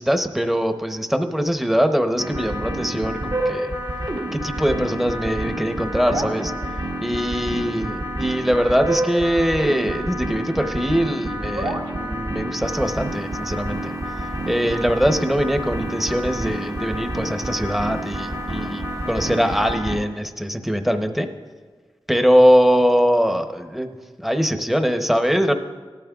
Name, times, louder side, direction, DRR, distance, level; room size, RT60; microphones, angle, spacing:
voice 1, 0.0-3.7 4.3-6.5 7.0-14.0 14.5-21.3 22.1-25.5, equal, 5° right, 6 dB, 0.8 m, -22 dB
sound 1, 2.2-20.0, right 1 dB, 55° right, 1.3 m, -28 dB
sound 2, 12.6-19.8, right 2 dB, 40° right, 0.6 m, -42 dB
17.5 x 12.5 x 2.4 m, 1.5 s
wide cardioid pair, 80°, 9 cm